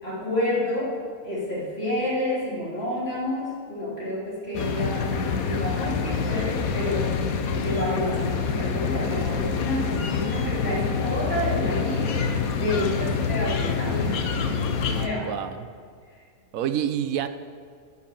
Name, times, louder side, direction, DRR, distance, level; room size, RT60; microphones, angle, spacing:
voice 1, 0.0-1.0 1.2-7.1 7.6-14.7 15.0-15.3, left 1 dB, 45° left, -6 dB, 3.4 m, -29 dB
sound 1, 4.5-15.1, left 5 dB, 85° left, 1.4 m, -26 dB
voice 2, 15.2-15.7 16.5-17.3, right 10 dB, 75° right, 10 dB, 1.1 m, -27 dB
12.5 x 7.3 x 7.5 m, 2.1 s
omnidirectional pair, 1.5 m